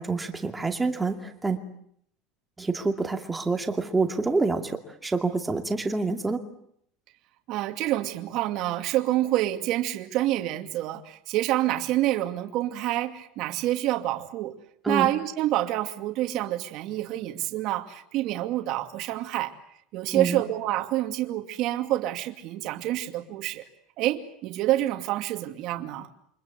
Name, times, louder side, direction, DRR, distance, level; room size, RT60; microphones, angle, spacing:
voice 1, 0.0-1.6 2.6-6.4 14.8-15.1 20.1-20.4, right 3 dB, 10° right, 5 dB, 2.3 m, -27 dB
voice 2, 7.5-14.5 14.9-19.5 19.9-23.6 24.0-26.1, right 15 dB, 45° right, 6 dB, 2.5 m, -27 dB
29.0 x 25.0 x 8.3 m, 0.70 s
cardioid pair, 175°, 0 cm